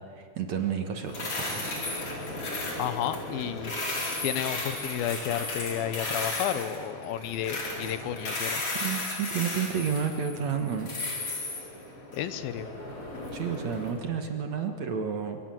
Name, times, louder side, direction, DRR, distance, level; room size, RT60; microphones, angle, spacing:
voice 1, 0.1-1.7 8.4-10.9 13.3-15.4, right 7 dB, 55° right, 5 dB, 2.2 m, -31 dB
sound 1, 1.0-13.9, left 2 dB, 35° left, 5.3 m, -35 dB
voice 2, 2.8-3.7 4.2-8.6 12.1-12.7, left 10 dB, 75° left, 12 dB, 2.7 m, -32 dB
25.0 x 23.5 x 7.6 m, 2.5 s
omnidirectional pair, 4.4 m